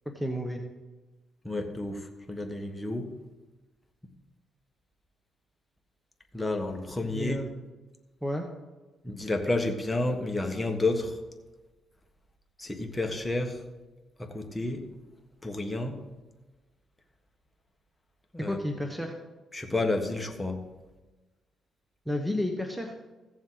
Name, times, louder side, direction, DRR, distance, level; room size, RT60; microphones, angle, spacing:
voice 1, 0.1-0.6 7.0-7.5 8.2-8.5 18.4-19.1 22.1-22.9, left 1 dB, 5° right, 3 dB, 1.1 m, -31 dB
voice 2, 1.4-3.1 6.3-7.4 9.0-11.2 12.6-13.6 14.2-14.8 15.4-16.0 18.3-18.6 19.5-20.6, left 2 dB, 10° left, 3 dB, 1.5 m, -30 dB
16.0 x 7.2 x 4.0 m, 1.2 s
cardioid pair, 90°, 0 cm